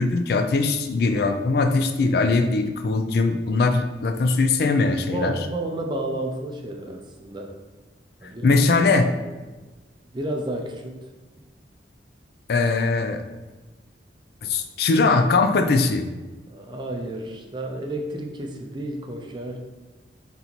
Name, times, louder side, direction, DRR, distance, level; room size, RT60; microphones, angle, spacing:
voice 1, 0.0-5.3 8.4-9.1 12.5-13.2 14.4-16.1, left 3 dB, 60° left, 7 dB, 0.3 m, -21 dB
voice 2, 5.0-7.6 8.2-8.7 10.1-11.1 16.5-19.6, right 1 dB, 25° right, 2 dB, 0.5 m, -31 dB
4.0 x 3.9 x 2.9 m, 1.2 s
head